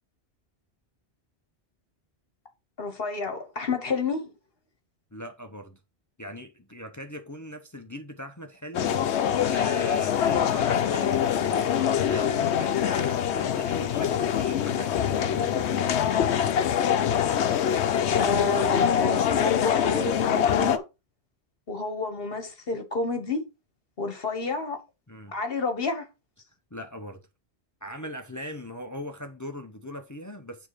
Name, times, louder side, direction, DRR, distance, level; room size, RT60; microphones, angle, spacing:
voice 1, 2.8-4.3 18.2-20.8 21.7-23.5 24.0-24.8 25.3-26.1, left 4 dB, 60° left, 1.6 m, -29 dB
voice 2, 5.1-5.8 6.2-9.0 9.5-15.9 25.1-25.3 26.7-27.2 27.8-30.7, equal, 20° left, 0.7 m, -40 dB
sound 1, 8.7-20.8, left 9 dB, 80° left, 1.0 m, -24 dB
8.7 x 3.8 x 4.8 m
omnidirectional pair, 1.1 m